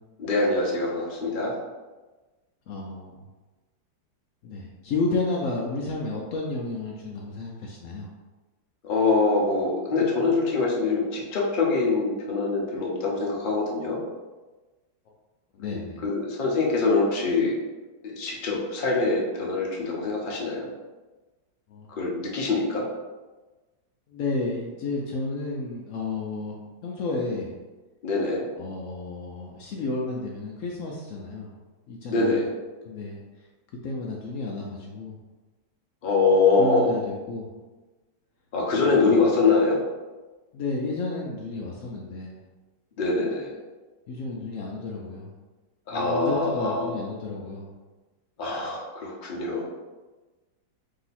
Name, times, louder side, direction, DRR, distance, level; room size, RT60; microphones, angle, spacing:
voice 1, 0.2-1.6 8.8-14.0 15.7-17.5 18.0-20.7 21.9-22.9 28.0-28.4 32.1-32.5 36.0-36.9 38.5-39.8 43.0-43.5 45.9-46.9 48.4-49.6, left 3 dB, 45° left, -3 dB, 0.6 m, -24 dB
voice 2, 2.7-3.2 4.4-8.1 15.5-16.0 21.7-21.9 24.1-26.6 26.8-27.5 28.6-31.5 31.9-32.4 32.9-33.2 33.8-35.2 36.6-37.5 38.7-39.2 40.5-42.4 44.1-45.3 45.9-47.7, left 3 dB, 90° left, -2 dB, 0.7 m, -32 dB
3.9 x 2.8 x 4.1 m, 1.2 s
omnidirectional pair, 2.0 m